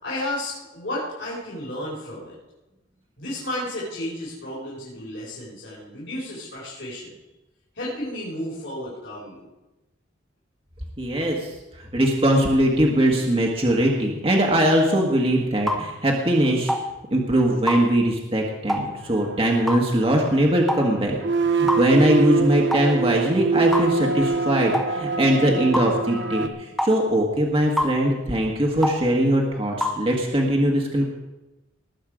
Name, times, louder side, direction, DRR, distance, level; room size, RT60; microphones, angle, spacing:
voice 1, 0.0-2.3 3.2-7.1 7.7-9.4, left 1 dB, 65° left, -8 dB, 4.6 m, -32 dB
voice 2, 11.0-11.5 11.9-16.7 17.1-21.2 21.4-31.0, right 1 dB, 30° right, 0 dB, 1.5 m, -21 dB
sound 1, 15.7-15.8 16.7-16.9 17.7-17.8 18.7-18.9 19.7-19.9 20.7-20.9 21.7-21.8 22.7-22.9 23.7-23.9 24.7-24.9 25.7-25.9 26.8-27.0 27.8-28.0 28.8-29.0 29.8-30.0, left 1 dB, ahead, 1.2 m, -24 dB
Simultaneous Notes, 19.2-26.5, right 4 dB, 60° right, 0.9 m, -25 dB
20.0 x 7.9 x 5.0 m, 1.0 s
head